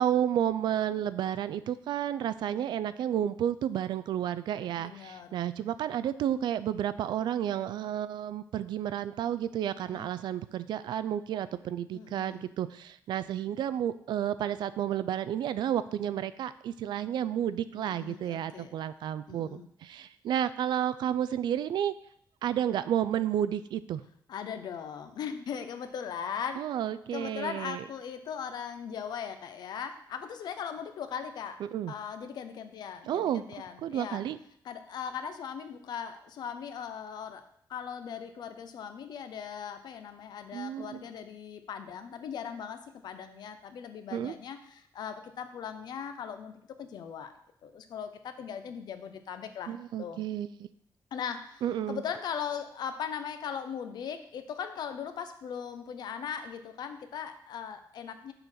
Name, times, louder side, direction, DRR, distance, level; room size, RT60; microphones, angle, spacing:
voice 1, 0.0-21.9 22.4-24.0 26.6-27.8 31.6-31.9 33.1-33.4 33.8-34.4 40.5-41.0 44.1-44.3 49.7-50.7 51.6-52.0, right 10 dB, 80° right, 14 dB, 0.4 m, -31 dB
voice 2, 4.8-5.4 9.8-10.1 11.9-12.4 17.7-18.7 19.3-19.7 24.3-26.6 27.1-31.6 31.9-34.2 34.6-37.4 37.7-47.3 47.6-50.2 51.1-51.6 51.9-58.3, left 7 dB, 65° left, 8 dB, 0.7 m, -39 dB
6.7 x 3.9 x 6.1 m, 0.68 s
wide cardioid pair, 175°, 8 cm